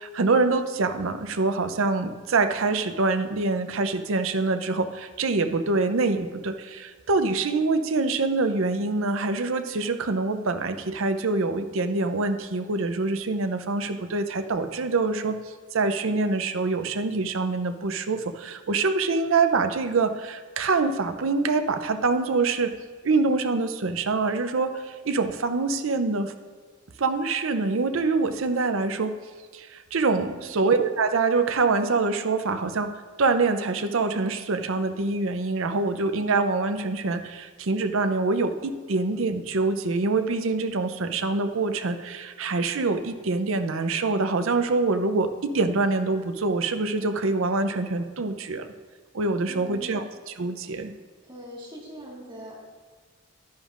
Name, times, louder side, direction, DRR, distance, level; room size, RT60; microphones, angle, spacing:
voice 1, 0.0-15.4 15.7-22.7 23.0-26.3 27.0-29.2 29.5-32.9 33.2-48.7 49.1-50.9, right 3 dB, 65° right, 9 dB, 0.6 m, -25 dB
voice 2, 30.1-30.5 49.4-50.0 50.6-50.7 51.3-52.6, equal, 20° right, -5 dB, 1.8 m, -42 dB
11.5 x 10.5 x 2.5 m, 1.6 s
head